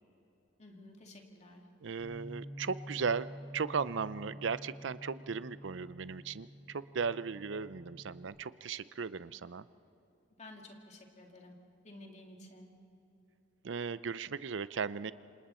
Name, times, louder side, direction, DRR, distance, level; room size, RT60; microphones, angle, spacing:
voice 1, 0.6-1.7 10.4-11.6 11.8-12.7, left 1 dB, 40° left, 1 dB, 2.5 m, -52 dB
voice 2, 1.8-3.3 3.5-9.6 13.6-15.1, right 5 dB, 70° right, 16 dB, 0.5 m, -36 dB
Bass guitar, 2.0-8.2, equal, 55° right, 7.3 m, -49 dB
28.0 x 26.5 x 4.4 m, 2.9 s
head